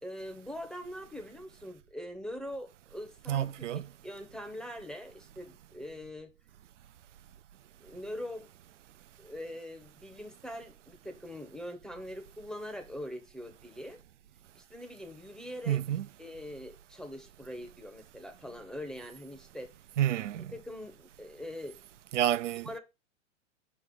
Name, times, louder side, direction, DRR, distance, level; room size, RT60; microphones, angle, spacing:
voice 1, 0.0-3.5 3.7-6.3 7.8-8.5 9.2-14.0 14.5-15.8 16.2-19.7 20.5-21.8 22.6-22.8, left 1 dB, ahead, 0.7 m, -42 dB
voice 2, 3.3-3.9 15.7-16.1 20.0-20.5 22.1-22.7, right 11 dB, 70° right, 0.5 m, -29 dB
5.5 x 3.2 x 5.4 m
figure-of-eight pair, 105°, 39 cm